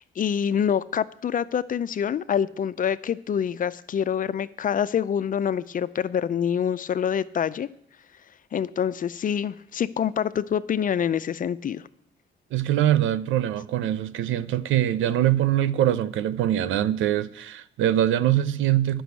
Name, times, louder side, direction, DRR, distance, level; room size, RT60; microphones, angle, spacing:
voice 1, 0.0-7.7 8.5-11.8, left 8 dB, 45° left, 0.5 m, -26 dB
voice 2, 12.5-19.0, right 12 dB, 85° right, 0.6 m, -23 dB
10.0 x 6.2 x 8.1 m
cardioid pair, 90°, 20 cm